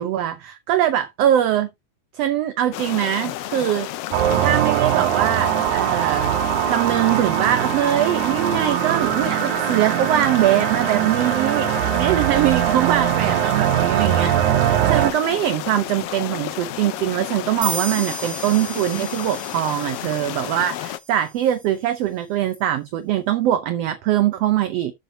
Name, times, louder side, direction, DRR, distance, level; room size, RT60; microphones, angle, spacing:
voice 1, 0.0-1.7 2.1-3.9 4.4-6.3 6.7-14.6 14.9-24.9, right 11 dB, 70° right, 1.7 m, -22 dB
sound 1, 2.7-21.0, left 14 dB, 75° left, 1.4 m, -31 dB
sound 2, 4.1-15.1, right 13 dB, 90° right, 2.1 m, -21 dB
sound 3, 17.6-21.2, right 5 dB, 40° right, 2.8 m, -34 dB
13.0 x 7.0 x 2.8 m
omnidirectional pair, 3.3 m